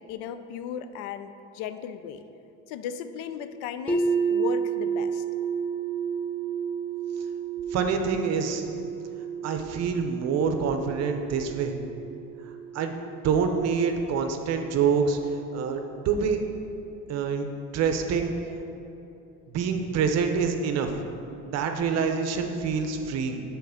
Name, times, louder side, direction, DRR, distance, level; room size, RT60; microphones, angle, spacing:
voice 1, 0.0-2.2 2.7-5.2, left 8 dB, 85° left, 11 dB, 0.5 m, -36 dB
sound 1, 3.9-15.8, right 6 dB, 5° left, 0.5 m, -32 dB
voice 2, 7.7-8.6 9.4-11.7 12.7-12.9 13.2-15.2 15.5-16.4 17.1-18.3 19.5-20.9 21.5-23.4, right 6 dB, 50° right, 6 dB, 0.7 m, -26 dB
6.4 x 3.8 x 5.6 m, 2.9 s
cardioid pair, 120°, 34 cm